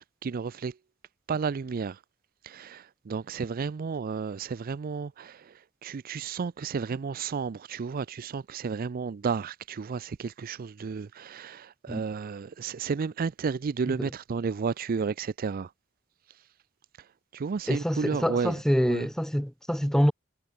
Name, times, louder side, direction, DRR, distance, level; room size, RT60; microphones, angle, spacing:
voice 1, 0.2-0.7 1.3-2.0 2.4-5.5 5.8-15.7 17.3-18.5 18.9-19.1, right 5 dB, 45° right, 0.4 m, -32 dB
voice 2, 17.7-20.1, equal, 5° left, 1.5 m, -26 dB
head